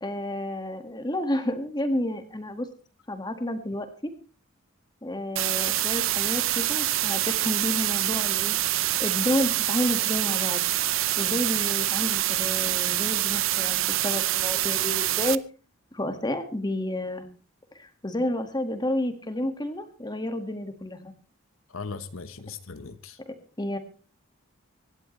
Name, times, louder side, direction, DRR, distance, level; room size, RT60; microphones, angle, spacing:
voice 1, 0.0-2.7 3.1-4.1 5.0-8.5 9.0-10.7 11.2-15.4 15.9-17.3 17.7-21.1 23.3-23.8, left 1 dB, 20° left, 7 dB, 1.9 m, -30 dB
sound 1, 5.4-15.4, right 15 dB, 70° right, 0.6 m, -26 dB
voice 2, 21.7-23.2, left 4 dB, 75° left, 10 dB, 1.1 m, -38 dB
25.5 x 11.5 x 3.3 m, 0.37 s
head